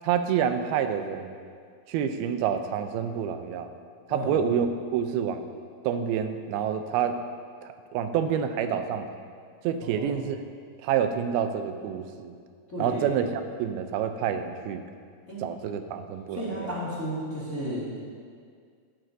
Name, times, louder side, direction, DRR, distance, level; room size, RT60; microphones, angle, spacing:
voice 1, 0.0-1.3 1.9-3.7 4.1-5.5 5.8-7.2 7.6-9.1 9.6-10.4 10.8-12.4 12.8-14.8 15.4-16.7, right 8 dB, 90° right, 8 dB, 2.5 m, -28 dB
voice 2, 9.8-10.2 12.7-13.2 15.3-15.4 16.3-18.0, equal, 25° left, -7 dB, 2.2 m, -33 dB
14.5 x 13.0 x 2.7 m, 2.1 s
omnidirectional pair, 4.3 m